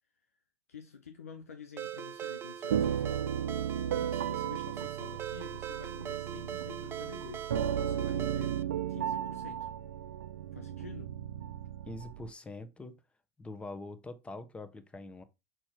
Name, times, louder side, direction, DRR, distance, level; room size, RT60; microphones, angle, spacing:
voice 1, 0.7-3.3 3.9-7.5 7.8-8.6 8.9-9.7 10.5-11.2, left 6 dB, 80° left, 0.7 m, -49 dB
Ringtone, 1.8-8.6, right 10 dB, 30° right, 0.7 m, -41 dB
sound 1, 2.7-12.3, right 9 dB, 75° right, 0.5 m, -35 dB
voice 2, 11.9-13.0 13.4-15.2, left 2 dB, 15° left, 1.0 m, -44 dB
6.1 x 4.3 x 4.5 m
figure-of-eight pair, 80°, 8 cm